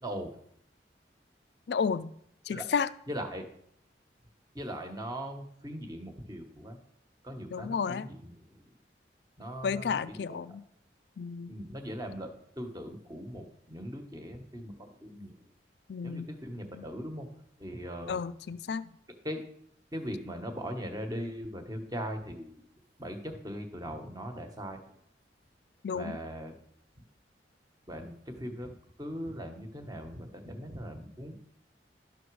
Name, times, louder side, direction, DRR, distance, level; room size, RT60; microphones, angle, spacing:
voice 1, 0.0-0.3 2.5-2.6 3.1-3.4 4.5-6.8 7.2-8.6 9.4-10.4 11.5-15.4 16.0-17.3 17.6-18.2 19.2-19.4 19.9-22.5 23.0-24.9 25.9-26.5 27.9-31.4, equal, 20° right, 5 dB, 1.2 m, -40 dB
voice 2, 1.7-2.1 2.5-2.9 7.5-8.1 9.6-10.6 11.2-11.5 15.9-16.3 16.8-16.9 18.1-18.9 25.8-26.2, left 6 dB, 65° left, 15 dB, 0.4 m, -32 dB
12.0 x 6.0 x 4.7 m, 0.68 s
head